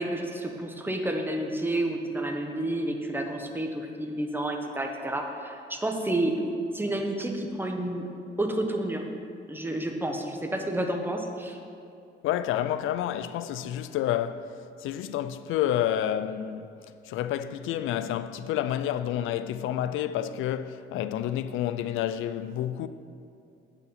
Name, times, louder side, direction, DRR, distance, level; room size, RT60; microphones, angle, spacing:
voice 1, 0.0-6.3 6.7-8.1 8.4-9.0 9.5-11.6, right 1 dB, 10° right, 1.1 m, -30 dB
voice 2, 12.2-14.4 14.8-16.7 17.1-22.9, left 11 dB, 85° left, 0.4 m, -29 dB
8.2 x 6.9 x 5.8 m
cardioid pair, 90°, 20 cm